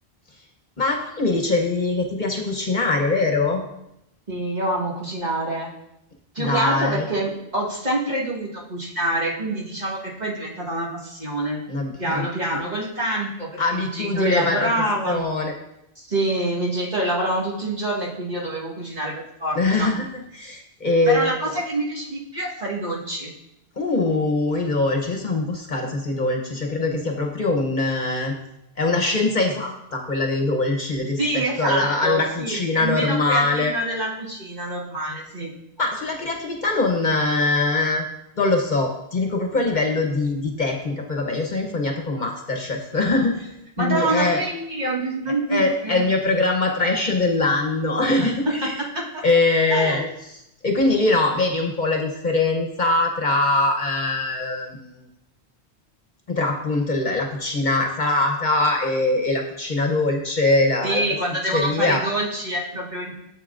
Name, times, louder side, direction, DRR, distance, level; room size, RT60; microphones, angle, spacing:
voice 1, 0.8-3.6 6.4-7.1 11.7-12.3 13.6-14.7 15.1-15.5 19.5-21.4 23.8-28.3 28.8-33.7 35.8-38.0 38.4-44.4 45.5-48.8 49.2-55.0 56.3-61.0 61.5-62.0, left 2 dB, 45° left, 2 dB, 1.0 m, -22 dB
voice 2, 4.3-5.7 6.3-11.6 12.0-15.3 16.0-19.9 21.1-23.3 31.2-35.5 43.8-46.0 48.2-48.7 48.9-49.2 49.7-50.1 60.8-63.2, right 1 dB, 40° right, -5 dB, 2.0 m, -26 dB
13.0 x 7.6 x 2.5 m, 0.83 s
omnidirectional pair, 1.1 m